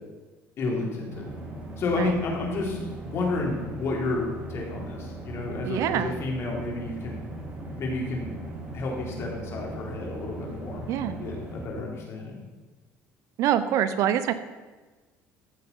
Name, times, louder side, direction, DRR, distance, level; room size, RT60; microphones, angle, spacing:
voice 1, 0.6-1.2 1.8-2.8 3.1-7.2 7.8-8.3 8.7-12.4, left 3 dB, 50° left, -1 dB, 3.6 m, -31 dB
sound 1, 1.1-11.7, right 2 dB, 25° right, 2.5 m, -39 dB
voice 2, 5.6-6.1 10.9-11.1 13.4-14.3, right 10 dB, 65° right, 12 dB, 0.8 m, -25 dB
14.5 x 6.9 x 5.6 m, 1.3 s
cardioid pair, 120°, 6 cm